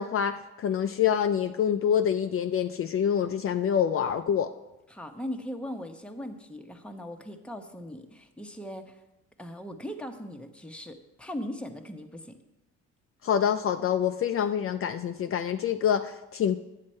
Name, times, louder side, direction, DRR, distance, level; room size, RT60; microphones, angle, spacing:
voice 1, 0.0-4.5 13.2-16.6, left 8 dB, 45° left, 7 dB, 0.5 m, -26 dB
voice 2, 4.9-9.0 9.4-12.4, equal, 5° left, 4 dB, 0.9 m, -39 dB
9.7 x 7.4 x 4.3 m, 0.97 s
cardioid pair, 90°, 30 cm